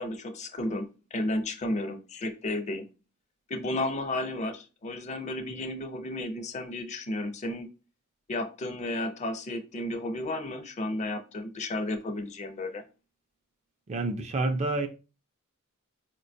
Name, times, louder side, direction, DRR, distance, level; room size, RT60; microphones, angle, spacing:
voice 1, 0.0-2.9 3.5-7.7 8.3-12.8, left 1 dB, 35° left, 0.4 m, -33 dB
voice 2, 13.9-14.9, right 2 dB, 30° right, 0.4 m, -28 dB
4.3 x 2.2 x 2.6 m
head